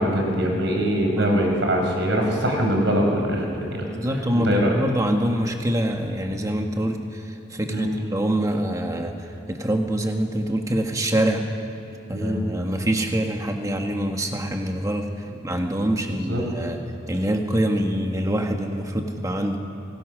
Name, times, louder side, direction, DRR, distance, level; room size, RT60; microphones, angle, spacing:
voice 1, 0.0-3.9 4.3-4.8 7.7-7.9 12.1-12.4 16.0-16.4, equal, 65° right, 1 dB, 4.7 m, -23 dB
voice 2, 3.8-9.1 9.5-11.4 12.1-15.1 15.4-16.8 17.1-19.6, right 1 dB, 15° right, 3 dB, 1.4 m, -25 dB
27.0 x 21.0 x 6.3 m, 2.7 s
head